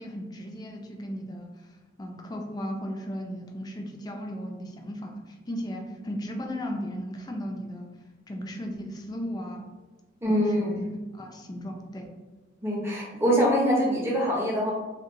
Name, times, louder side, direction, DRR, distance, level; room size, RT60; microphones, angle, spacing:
voice 1, 0.0-1.5 2.0-7.9 8.3-9.6 10.3-10.8 11.1-12.1, equal, 20° left, 2 dB, 0.3 m, -36 dB
voice 2, 10.2-10.8 12.6-14.7, equal, 15° right, -4 dB, 0.6 m, -24 dB
2.8 x 2.1 x 2.6 m, 1.2 s
head